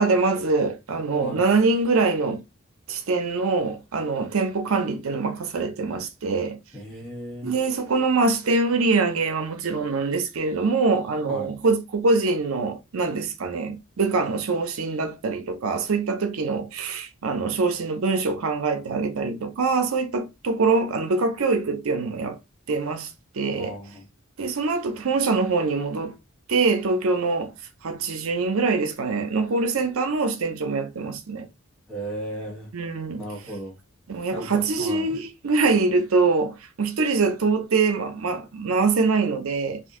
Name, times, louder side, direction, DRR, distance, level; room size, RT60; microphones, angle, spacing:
voice 1, 0.0-2.4 2.9-6.6 7.4-22.4 22.7-23.8 24.4-26.2 26.5-27.5 27.8-31.5 32.7-33.2 34.1-39.8, right 4 dB, 85° right, 0.6 m, -24 dB
voice 2, 6.7-7.5 11.3-11.5 23.5-24.0 31.9-32.7 33.2-33.8 34.3-35.1, right 1 dB, 5° left, 1.1 m, -35 dB
2.6 x 2.5 x 3.6 m
head